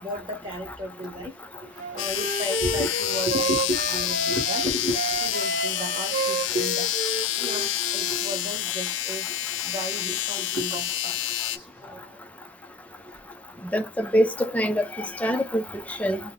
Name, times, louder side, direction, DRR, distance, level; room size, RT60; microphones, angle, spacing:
voice 1, 0.0-1.3 1.6-6.9 7.4-9.3 9.6-11.2 11.4-12.2 13.0-13.1 13.5-13.6, equal, 30° right, 1.1 m, -33 dB
Wind instrument woodwind instrument, 1.8-4.7 4.9-8.4, right 3 dB, 45° right, 0.6 m, -30 dB
sound 1, 2.0-11.6, left 14 dB, 90° left, 0.3 m, -28 dB
voice 2, 13.7-16.2, equal, 10° left, 0.4 m, -25 dB
2.9 x 2.1 x 3.6 m
head